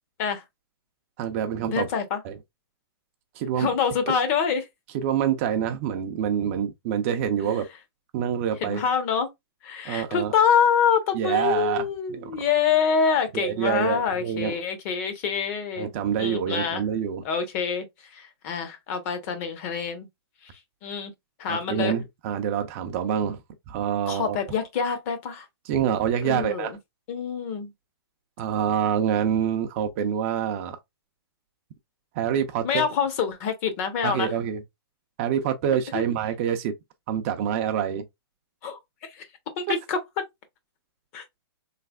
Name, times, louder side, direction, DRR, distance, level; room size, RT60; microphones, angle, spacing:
voice 1, 1.2-1.9 2.2-2.4 3.4-3.7 4.9-7.7 8.1-8.8 9.8-10.3 11.1-12.4 13.3-14.6 15.8-17.2 21.5-23.4 23.7-24.4 25.7-26.7 28.4-30.8 32.1-32.9 34.0-34.6 35.2-36.7 37.1-38.0, right 9 dB, 35° right, 0.5 m, -26 dB
voice 2, 1.7-2.2 3.6-4.7 7.4-7.6 8.6-9.3 9.6-15.9 16.2-16.8 17.2-17.8 18.1-20.1 20.8-21.1 21.4-21.9 24.1-25.5 26.2-26.8 27.1-27.7 32.6-34.3 35.9-36.0 38.6-38.8 39.1-39.2 39.6-40.0 41.1-41.2, left 7 dB, 35° left, 0.8 m, -26 dB
3.3 x 3.2 x 2.3 m
hypercardioid pair, 150°, 13 cm